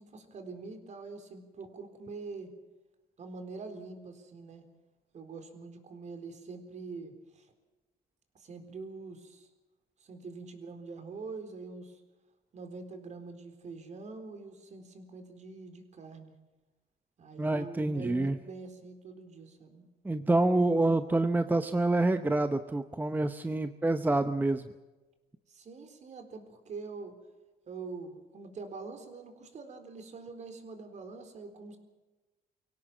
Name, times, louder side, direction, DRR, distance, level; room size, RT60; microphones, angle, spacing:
voice 1, 0.0-2.5 3.2-4.7 5.1-7.5 8.3-9.5 10.0-12.0 12.5-16.3 17.2-19.8 25.5-27.2 27.7-31.8, right 4 dB, 45° right, 7 dB, 4.0 m, -44 dB
voice 2, 17.4-18.4 20.0-24.7, right 2 dB, 10° right, 9 dB, 0.9 m, -27 dB
24.0 x 17.0 x 7.4 m, 1.2 s
cardioid pair, 110°, 17 cm